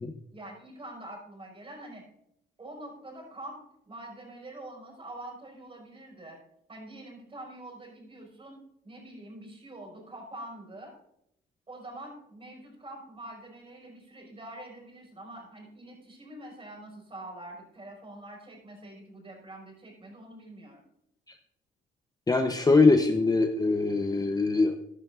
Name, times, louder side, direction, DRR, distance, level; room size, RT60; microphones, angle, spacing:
voice 1, 0.3-2.0 2.6-6.4 6.7-10.9 11.7-20.8, right 1 dB, 25° right, 0 dB, 5.1 m, -45 dB
voice 2, 22.3-24.8, left 3 dB, 20° left, 6 dB, 0.8 m, -22 dB
15.0 x 10.5 x 2.5 m, 0.77 s
cardioid pair, 90°, 20 cm